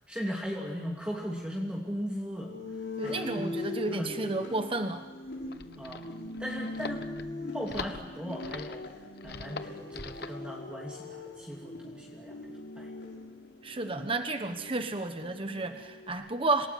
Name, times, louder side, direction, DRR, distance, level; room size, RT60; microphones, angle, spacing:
voice 1, 0.1-2.5 3.0-4.4 5.8-6.1 6.4-7.0 7.5-8.8 9.2-12.4 12.8-12.9, equal, 5° right, -3 dB, 2.8 m, -38 dB
sound 1, 2.4-16.1, left 2 dB, 80° left, 5.8 m, -41 dB
voice 2, 3.0-5.0 13.6-16.7, right 2 dB, 30° right, 7 dB, 1.2 m, -32 dB
sound 2, 5.2-10.4, left 4 dB, 60° left, 1.2 m, -43 dB
27.5 x 18.0 x 9.4 m, 1.2 s
head